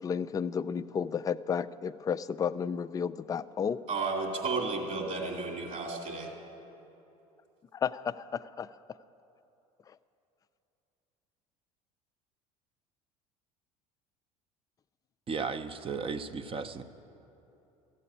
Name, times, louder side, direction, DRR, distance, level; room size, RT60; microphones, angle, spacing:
voice 1, 0.0-3.8 7.7-8.7, left 7 dB, 20° left, 12 dB, 0.3 m, -32 dB
voice 2, 3.9-6.3, right 3 dB, 45° right, 1 dB, 2.5 m, -33 dB
voice 3, 15.3-16.8, right 5 dB, 30° right, 11 dB, 0.7 m, -35 dB
13.5 x 7.7 x 8.6 m, 3.0 s
hypercardioid pair, 75°, 18 cm